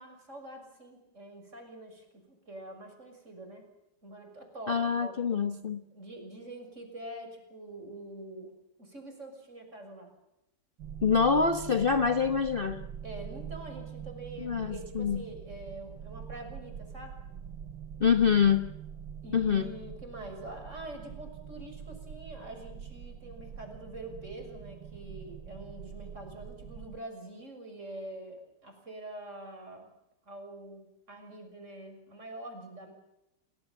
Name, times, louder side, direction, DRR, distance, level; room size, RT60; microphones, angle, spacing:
voice 1, 0.0-3.7 4.0-5.4 5.9-8.5 8.8-10.1 12.1-12.4 13.0-17.2 19.2-29.9 30.3-32.9, right 1 dB, 40° right, 5 dB, 6.8 m, -45 dB
voice 2, 4.7-5.8 11.0-12.8 14.4-15.2 18.0-18.7 19.3-19.7, left 6 dB, 35° left, 8 dB, 1.2 m, -25 dB
sound 1, 10.8-27.0, right 8 dB, 90° right, 1.9 m, -44 dB
30.0 x 19.5 x 7.3 m, 0.86 s
omnidirectional pair, 1.9 m